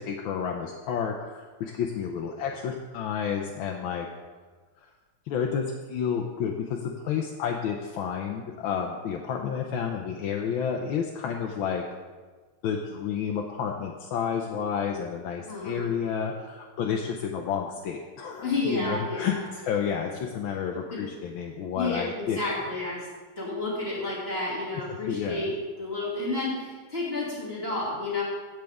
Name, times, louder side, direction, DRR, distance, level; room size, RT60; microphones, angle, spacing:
voice 1, 0.1-4.1 5.3-11.8 12.6-22.7 25.1-25.5, left 7 dB, 90° left, 2 dB, 1.5 m, -30 dB
voice 2, 15.5-15.9 18.4-19.4 20.8-21.0 21.7-23.1 23.4-28.2, left 2 dB, 30° left, -7 dB, 2.9 m, -31 dB
16.5 x 6.6 x 3.5 m, 1.4 s
omnidirectional pair, 2.1 m